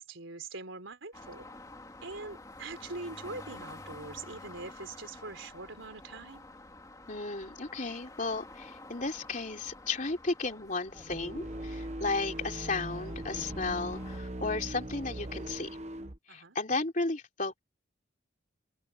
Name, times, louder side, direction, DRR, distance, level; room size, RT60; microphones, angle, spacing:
voice 1, 0.0-1.5 2.0-6.5 16.3-16.6, right 3 dB, 75° right, 3.9 m, -43 dB
sound 1, 1.1-14.2, left 2 dB, 15° left, 3.3 m, -50 dB
voice 2, 7.1-15.7 16.3-17.6, left 3 dB, 40° left, 3.5 m, -34 dB
sound 2, 10.9-16.2, right 1 dB, 35° right, 1.2 m, -40 dB
open air
head